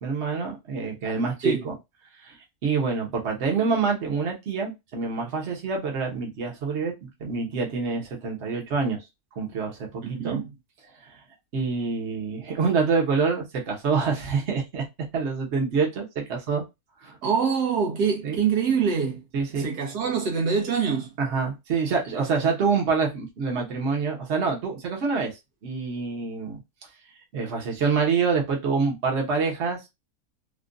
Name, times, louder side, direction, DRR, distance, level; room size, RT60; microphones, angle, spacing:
voice 1, 0.0-1.7 2.2-2.3 2.6-9.0 9.4-10.4 11.5-14.8 15.1-16.6 17.0-17.1 18.2-18.4 19.3-19.7 21.2-25.3 25.6-26.6 27.3-29.9, right 5 dB, 50° right, 1.3 m, -26 dB
voice 2, 10.0-10.4 17.2-19.2 19.6-21.1, right 6 dB, 85° right, 1.6 m, -25 dB
3.7 x 2.4 x 2.5 m
omnidirectional pair, 1.6 m